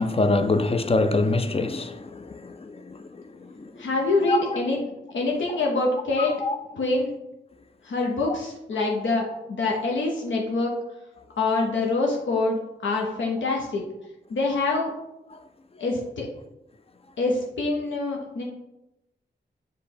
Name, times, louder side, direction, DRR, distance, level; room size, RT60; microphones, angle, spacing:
voice 1, 0.0-3.7 4.2-4.4 5.5-5.6 6.2-6.6 15.3-15.4, left 3 dB, 30° left, 0.4 m, -25 dB
voice 2, 3.8-4.8 5.1-6.3 6.7-7.1 7.8-10.7 11.4-13.8 14.3-14.9 15.8-16.3 17.2-18.4, left 3 dB, 80° left, 0.7 m, -25 dB
5.2 x 2.1 x 4.3 m
cardioid pair, 60°, 19 cm